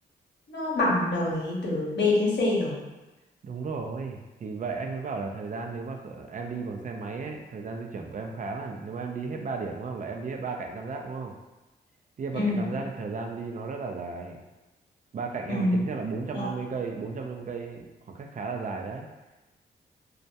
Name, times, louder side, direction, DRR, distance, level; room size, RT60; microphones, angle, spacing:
voice 1, 0.5-2.8 12.3-12.6 15.5-15.8 16.3-16.5, left 2 dB, 65° left, -5 dB, 0.8 m, -25 dB
voice 2, 3.4-11.3 12.2-14.4 15.1-19.1, right 4 dB, 45° right, 2 dB, 0.4 m, -34 dB
2.2 x 2.1 x 2.7 m, 1.1 s
supercardioid pair, 55°, 19 cm